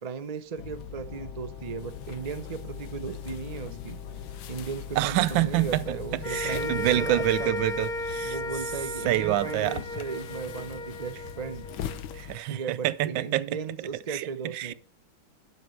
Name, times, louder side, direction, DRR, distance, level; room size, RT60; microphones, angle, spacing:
voice 1, 0.0-4.0 4.5-7.5 8.2-11.7 12.5-14.7, right 5 dB, 65° right, 0.3 m, -36 dB
sound 1, 0.6-12.4, left 9 dB, 85° left, 1.6 m, -40 dB
Brass instrument, 0.9-7.8, left 3 dB, 25° right, 1.8 m, -52 dB
voice 2, 5.0-5.8 6.1-8.4 9.0-9.8 12.1-13.6 14.1-14.3 14.5-14.7, right 15 dB, 80° right, 1.3 m, -27 dB
sound 2, 6.2-12.6, left 1 dB, 55° left, 0.5 m, -35 dB
11.0 x 6.0 x 4.5 m
omnidirectional pair, 2.1 m